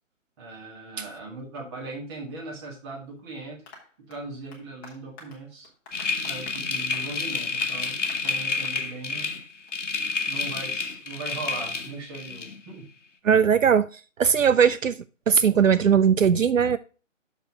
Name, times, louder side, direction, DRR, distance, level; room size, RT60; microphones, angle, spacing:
voice 1, 0.4-3.6 4.1-5.7 6.2-9.3 10.3-12.9, right 3 dB, 20° right, 1.9 m, -39 dB
Applause, 3.7-8.9 9.2-9.3 9.7-9.8 10.1-10.2, left 3 dB, 15° left, 1.3 m, -49 dB
sound 1, 5.9-12.6, left 4 dB, 65° left, 1.2 m, -29 dB
voice 2, 13.2-13.8 14.2-15.0 15.3-16.8, right 7 dB, 75° right, 0.6 m, -19 dB
6.5 x 5.1 x 4.7 m
figure-of-eight pair, 145°, 39 cm